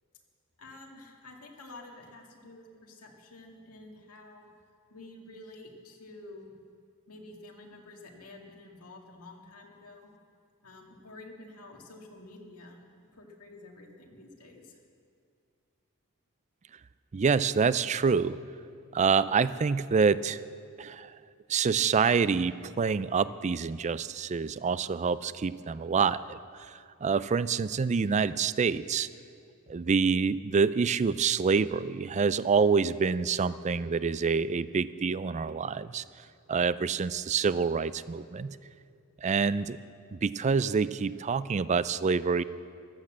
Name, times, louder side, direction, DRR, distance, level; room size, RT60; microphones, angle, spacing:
voice 1, 0.6-4.5 4.9-6.5 7.1-10.1 10.6-12.8 13.2-14.8, left 2 dB, 80° left, 0 dB, 2.2 m, -49 dB
voice 2, 17.1-18.4 18.9-20.4 20.8-21.1 21.5-26.4 26.7-29.1 29.7-36.0 36.5-38.6 39.2-39.8 40.1-42.4, right 5 dB, 30° right, 16 dB, 0.4 m, -27 dB
14.5 x 12.0 x 7.5 m, 2.3 s
head